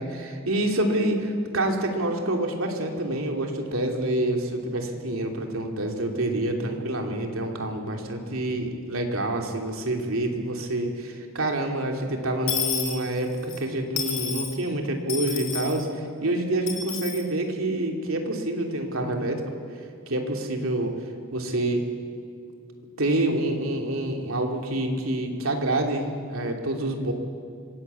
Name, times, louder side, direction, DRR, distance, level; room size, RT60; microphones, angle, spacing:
voice 1, 0.0-19.4 20.1-20.9 21.3-21.8 23.0-27.1, right 1 dB, 80° right, 2 dB, 3.1 m, -27 dB
Dishes pots and pans / Coin (dropping), 12.5-13.6 14.0-14.5 15.1-15.8 16.7-17.2, left 8 dB, 75° left, 3.5 m, -30 dB
25.5 x 17.5 x 8.5 m, 2.4 s
head